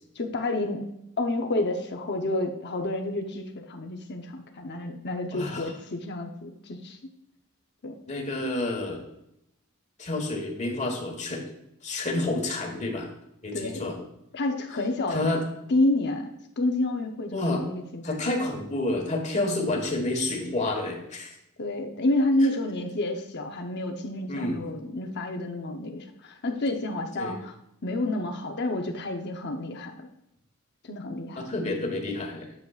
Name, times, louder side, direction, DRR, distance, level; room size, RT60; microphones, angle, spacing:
voice 1, 0.2-0.8 1.2-7.0 7.8-7.9 13.5-13.9 14.3-15.4 15.7-16.3 16.6-18.0 21.6-27.5 27.8-30.1 30.8-31.4, left 2 dB, 50° left, 4 dB, 0.8 m, -29 dB
voice 2, 5.3-5.7 8.1-9.0 10.0-11.4 11.8-13.1 13.4-14.0 15.1-15.4 17.3-17.6 18.0-21.4 24.3-24.6 27.2-27.4 31.3-32.5, left 2 dB, 35° left, 2 dB, 1.5 m, -29 dB
10.5 x 7.2 x 2.4 m, 0.82 s
head